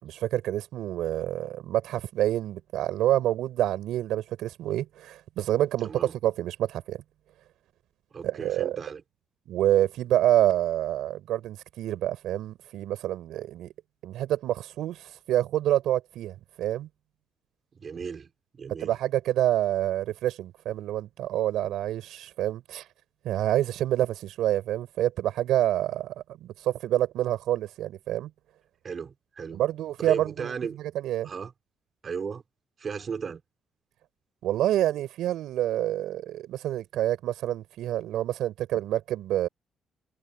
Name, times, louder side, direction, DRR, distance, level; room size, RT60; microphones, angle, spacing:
voice 1, 0.0-7.0 8.2-8.8 9.5-13.7 14.0-16.9 18.8-22.8 23.2-28.3 29.5-31.3 34.4-39.5, right 13 dB, 85° right, 6.4 m, -27 dB
voice 2, 5.8-6.1 8.1-9.0 17.8-18.9 28.8-29.6 30.0-30.8 31.2-31.5 32.0-32.4 32.8-33.4, right 6 dB, 45° right, 5.2 m, -35 dB
cardioid pair, 90°, 0 cm